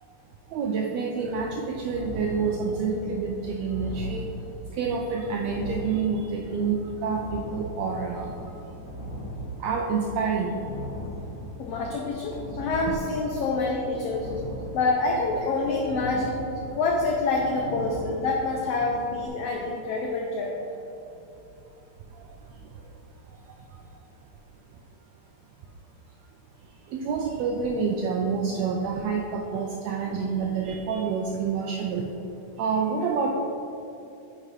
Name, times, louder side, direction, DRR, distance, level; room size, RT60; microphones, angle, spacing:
voice 1, 0.5-4.3 4.8-8.3 9.6-10.6 26.9-32.0 32.6-33.3, right 5 dB, 85° right, 1 dB, 1.5 m, -28 dB
sound 1, 1.1-19.3, equal, 60° left, 2.6 m, -39 dB
voice 2, 11.6-14.3 14.7-16.4 16.7-20.5, left 3 dB, 85° left, -1 dB, 1.3 m, -27 dB
9.8 x 4.9 x 3.2 m, 2.9 s
omnidirectional pair, 3.5 m